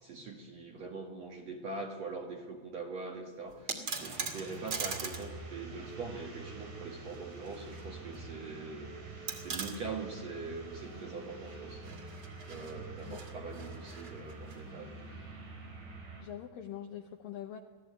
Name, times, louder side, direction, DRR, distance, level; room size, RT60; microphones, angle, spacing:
voice 1, 0.0-8.9 9.4-12.0 12.5-15.0, right 3 dB, 55° right, 1 dB, 2.1 m, -43 dB
sound 1, 3.5-5.3 5.6-5.7 7.1-7.9 8.1-8.2 9.3-9.8 11.7-14.6, right 5 dB, 40° right, 2.2 m, -41 dB
sound 2, 3.9-16.2, right 3 dB, 80° right, 7.2 m, -46 dB
voice 2, 16.2-17.6, left 10 dB, 80° left, 6 dB, 2.0 m, -43 dB
23.5 x 16.5 x 8.2 m, 1.4 s
omnidirectional pair, 5.0 m